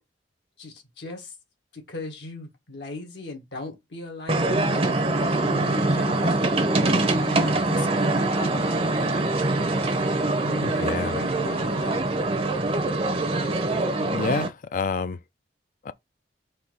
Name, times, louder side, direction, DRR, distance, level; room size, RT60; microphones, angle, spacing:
voice 1, 0.6-1.3 1.7-5.0 5.4-6.3 6.8-8.8 10.4-12.2, left 2 dB, 75° left, 1.6 m, -38 dB
sound 1, 4.3-14.5, right 2 dB, 35° right, 0.6 m, -24 dB
voice 2, 10.6-11.2 14.0-15.2 15.8-15.9, left 5 dB, 45° left, 0.4 m, -28 dB
4.3 x 2.8 x 3.8 m
head